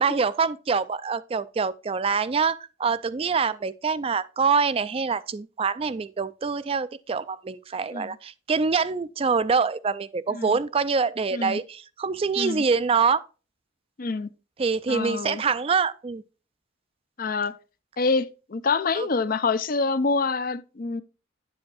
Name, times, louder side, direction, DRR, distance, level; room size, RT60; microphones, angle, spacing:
voice 1, 0.0-13.2 14.6-16.2 18.9-19.1, right 5 dB, 30° right, 0.3 m, -25 dB
voice 2, 14.0-14.3 14.9-15.4 17.2-17.6 18.0-21.0, left 4 dB, 45° left, 0.5 m, -26 dB
10.5 x 7.8 x 2.4 m
head